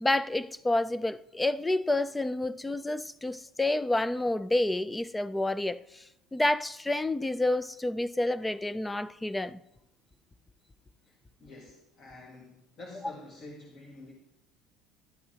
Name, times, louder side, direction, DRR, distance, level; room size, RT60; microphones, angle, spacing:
voice 1, 0.0-6.0 6.3-9.6, left 2 dB, 10° left, 0.4 m, -29 dB
voice 2, 11.1-14.1, left 2 dB, 40° left, 1.9 m, -48 dB
14.5 x 11.5 x 2.9 m
cardioid pair, 155°, 0 cm